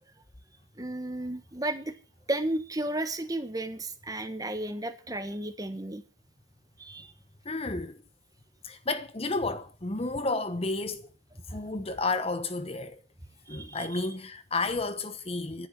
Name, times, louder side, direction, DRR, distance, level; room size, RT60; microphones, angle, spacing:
voice 1, 0.8-1.9 2.3-6.0 6.8-7.1 11.5-11.6 13.5-14.0, right 1 dB, 20° right, 1.4 m, -33 dB
voice 2, 7.4-8.0 8.6-11.1 11.5-13.0 13.5-15.7, left 3 dB, 30° left, 0.9 m, -31 dB
11.5 x 10.0 x 8.9 m
head